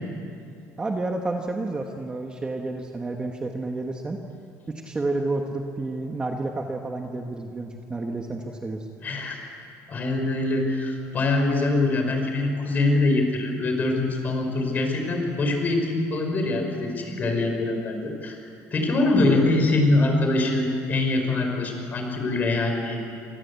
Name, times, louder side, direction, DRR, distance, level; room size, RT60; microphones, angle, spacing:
voice 1, 0.8-4.2 4.7-8.8 19.2-19.6, right 2 dB, 15° right, 2 dB, 1.4 m, -30 dB
voice 2, 9.0-9.4 9.9-18.4 18.7-23.0, left 2 dB, 30° left, 3 dB, 5.0 m, -23 dB
28.0 x 25.5 x 8.4 m, 2.5 s
cardioid pair, 175°, 6 cm